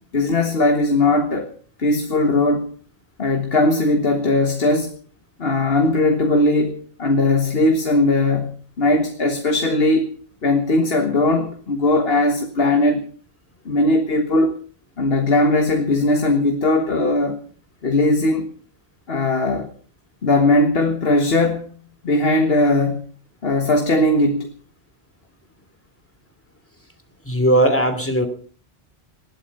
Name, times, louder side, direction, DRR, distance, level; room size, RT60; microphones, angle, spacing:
voice 1, 0.1-1.5 1.8-2.7 3.2-4.9 5.4-10.1 10.4-13.1 13.7-14.5 15.0-17.4 17.8-18.5 19.1-19.7 20.2-21.7 22.0-23.0 23.4-24.5, left 2 dB, 70° left, 1.8 m, -19 dB
voice 2, 27.2-28.3, right 1 dB, 10° left, 2.9 m, -18 dB
19.5 x 12.5 x 5.5 m
omnidirectional pair, 1.1 m